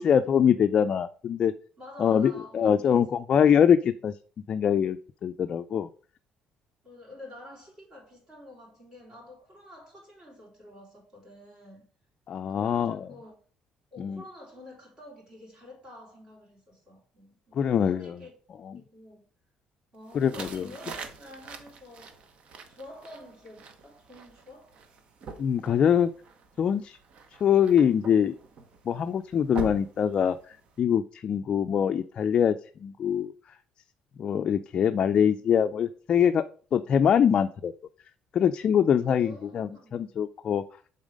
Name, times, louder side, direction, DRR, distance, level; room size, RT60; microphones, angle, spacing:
voice 1, 0.0-1.5 2.0-4.1 4.5-5.9 12.3-13.1 14.0-14.2 17.6-18.2 20.1-20.7 25.4-26.1 26.6-27.0 27.4-28.4 28.9-30.4 30.8-32.6 32.8-33.3 34.2-36.4 36.7-37.7 38.3-40.6, left 8 dB, 40° left, 0.3 m, -23 dB
voice 2, 1.8-3.3 6.8-11.9 12.5-13.4 13.9-18.4 18.7-19.3 19.9-22.3 22.7-24.8 39.0-40.1, left 1 dB, 30° right, 3.9 m, -49 dB
sound 1, 20.1-30.8, right 4 dB, 50° right, 1.0 m, -44 dB
7.3 x 4.0 x 5.1 m
cardioid pair, 140°, 2 cm